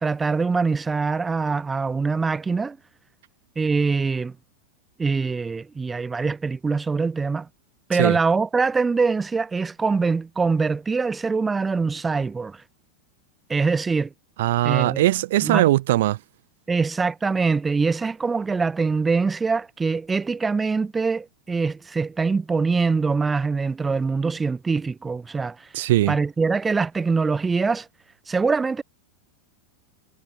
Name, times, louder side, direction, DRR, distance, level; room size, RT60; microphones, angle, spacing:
voice 1, 0.0-2.8 3.6-4.3 5.0-7.5 7.9-12.6 13.5-14.1 14.6-15.0 15.4-15.6 16.7-25.7 26.1-27.9 28.3-28.8, right 4 dB, 15° right, 2.0 m, -23 dB
voice 2, 14.4-16.2 25.7-26.2, right 15 dB, 55° right, 1.4 m, -20 dB
figure-of-eight pair, 90°, 0 cm